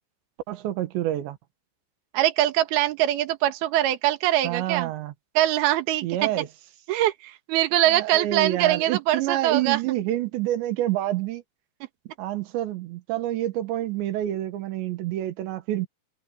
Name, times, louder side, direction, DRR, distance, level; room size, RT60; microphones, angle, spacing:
voice 1, 0.5-1.4 4.4-5.1 6.0-6.5 7.9-11.4 12.2-15.9, right 13 dB, 90° right, 3.7 m, -28 dB
voice 2, 2.1-4.9 5.3-6.3 6.9-9.8, right 13 dB, 70° right, 3.3 m, -23 dB
omnidirectional pair, 5.0 m